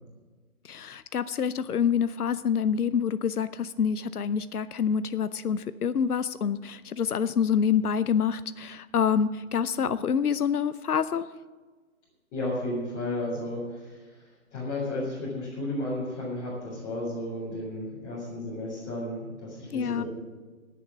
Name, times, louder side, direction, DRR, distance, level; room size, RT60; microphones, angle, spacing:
voice 1, 0.6-11.3 19.7-20.0, left 7 dB, 90° left, 14 dB, 0.7 m, -27 dB
voice 2, 12.3-20.1, left 1 dB, 15° left, -9 dB, 3.8 m, -33 dB
18.0 x 7.2 x 7.2 m, 1.4 s
hypercardioid pair, 155°, 44 cm